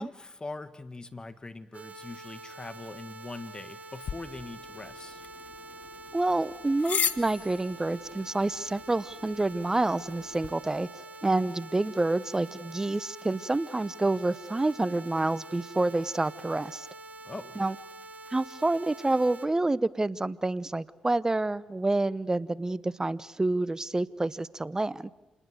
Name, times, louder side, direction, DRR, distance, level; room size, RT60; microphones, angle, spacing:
voice 1, 0.0-5.2 17.2-17.6, left 3 dB, 30° left, 12 dB, 1.6 m, -42 dB
sound 1, 1.7-19.5, right 3 dB, 60° right, 2.9 m, -46 dB
sound 2, 4.0-10.5, left 8 dB, 65° left, 1.0 m, -38 dB
voice 2, 6.1-10.9 11.2-16.9 17.6-17.8 18.3-25.1, right 2 dB, 20° right, 19 dB, 0.9 m, -28 dB
28.0 x 20.0 x 8.0 m, 1.1 s
supercardioid pair, 45°, 3 cm